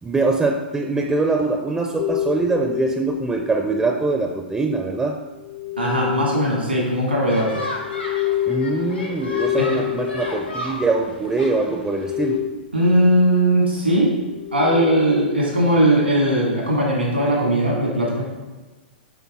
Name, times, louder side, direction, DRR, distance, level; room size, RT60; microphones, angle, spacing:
voice 1, 0.0-5.2 8.4-12.4, right 3 dB, 10° right, 3 dB, 0.4 m, -23 dB
sound 1, 2.0-4.4 5.3-11.4 11.7-13.1 14.1-15.2, left 12 dB, 50° left, 0.6 m, -28 dB
voice 2, 5.8-7.6 9.6-9.7 12.7-14.2 14.5-18.2, right 1 dB, 90° right, -3 dB, 1.8 m, -19 dB
sound 2, 7.3-12.4, left 1 dB, 80° left, 1.3 m, -34 dB
8.1 x 3.5 x 3.6 m, 1.2 s
figure-of-eight pair, 110°, 6 cm